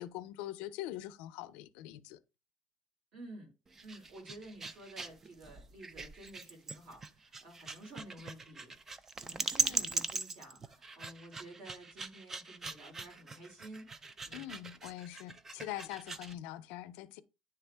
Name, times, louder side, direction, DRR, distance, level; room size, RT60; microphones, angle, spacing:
voice 1, 0.0-2.2 9.6-10.0 14.3-17.2, left 14 dB, 80° left, 0.5 m, -43 dB
voice 2, 3.1-3.5 3.8-14.6, right 1 dB, 55° right, 3.3 m, -52 dB
sound 1, 3.7-16.4, right 4 dB, 20° right, 0.4 m, -40 dB
9.9 x 3.3 x 3.4 m
cardioid pair, 165°, 2 cm